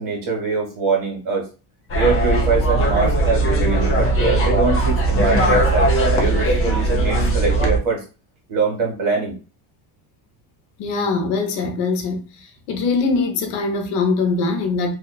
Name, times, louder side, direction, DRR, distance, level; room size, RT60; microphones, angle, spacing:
voice 1, 0.0-1.5 1.9-8.0 8.5-9.3, right 4 dB, 40° right, 1.4 m, -23 dB
sound 1, 1.9-7.8, right 2 dB, 30° left, 0.5 m, -18 dB
voice 2, 10.8-12.2 12.7-14.9, left 4 dB, 80° left, 0.8 m, -22 dB
2.8 x 2.2 x 2.3 m
cardioid pair, 135°, 49 cm